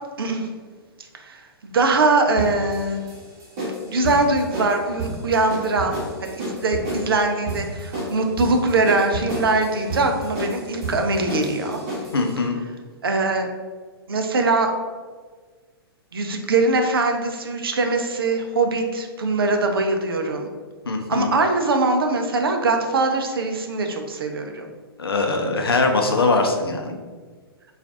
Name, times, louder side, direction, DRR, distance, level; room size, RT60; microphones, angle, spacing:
voice 1, 0.2-0.5 1.2-3.1 3.9-11.8 13.0-13.5 14.1-14.7 16.1-20.5 21.1-24.7, right 3 dB, 65° right, 4 dB, 0.5 m, -22 dB
sound 1, 2.4-12.3, right 1 dB, 40° right, 1.1 m, -31 dB
voice 2, 12.1-12.6 20.9-21.3 25.0-26.9, left 3 dB, 70° left, 3 dB, 0.5 m, -21 dB
4.4 x 2.4 x 2.5 m, 1.5 s
figure-of-eight pair, 110°, 13 cm